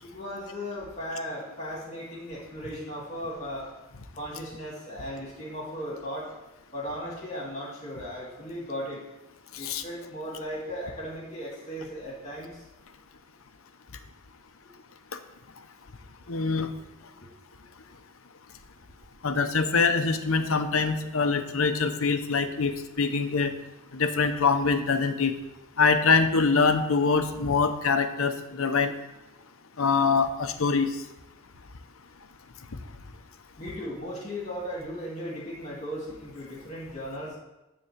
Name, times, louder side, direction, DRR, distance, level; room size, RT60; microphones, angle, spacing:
voice 1, 0.0-3.7 4.1-6.3 6.7-9.0 9.5-12.6 33.6-37.4, equal, 35° left, -5 dB, 2.3 m, -36 dB
voice 2, 16.3-16.7 19.2-23.5 23.9-25.3 25.8-28.9 29.8-31.0, left 4 dB, 85° left, 8 dB, 0.8 m, -24 dB
9.8 x 3.7 x 7.2 m, 0.98 s
head